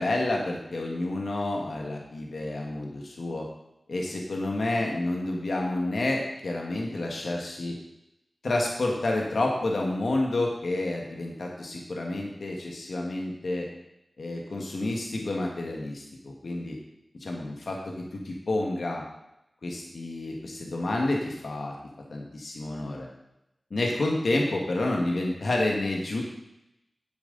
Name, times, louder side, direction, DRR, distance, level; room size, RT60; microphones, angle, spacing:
voice 1, 0.0-3.5 3.9-7.7 8.4-13.7 14.2-16.8 17.2-19.0 19.6-21.7 22.1-23.1 23.7-26.2, left 2 dB, 85° left, 0 dB, 1.5 m, -29 dB
10.5 x 8.0 x 3.9 m, 0.85 s
wide cardioid pair, 50°, 0 cm